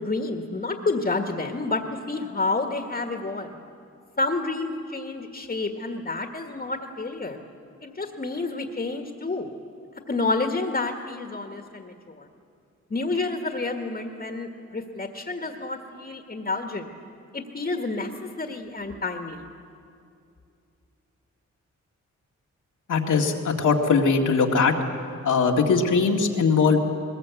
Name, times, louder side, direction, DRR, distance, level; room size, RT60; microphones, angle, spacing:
voice 1, 0.0-1.8 2.1-3.6 4.2-7.4 7.8-9.5 10.1-12.2 12.9-16.9 17.3-18.1 18.4-19.4, left 3 dB, 30° left, 4 dB, 1.7 m, -29 dB
voice 2, 22.9-24.7 25.2-26.8, left 5 dB, 85° left, 1 dB, 2.0 m, -20 dB
20.5 x 19.5 x 8.3 m, 2.5 s
cardioid pair, 85°, 30 cm